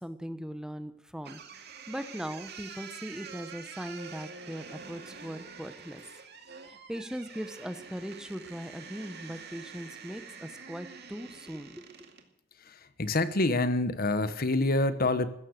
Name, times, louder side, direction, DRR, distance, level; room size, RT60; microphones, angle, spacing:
voice 1, 0.0-1.4 1.9-6.0 6.7-11.8, equal, 5° right, 11 dB, 0.9 m, -39 dB
sound 1, 1.2-12.3, right 5 dB, 55° right, 2.2 m, -47 dB
voice 2, 13.0-15.3, left 2 dB, 50° left, 13 dB, 1.1 m, -26 dB
16.0 x 13.5 x 6.5 m, 0.81 s
head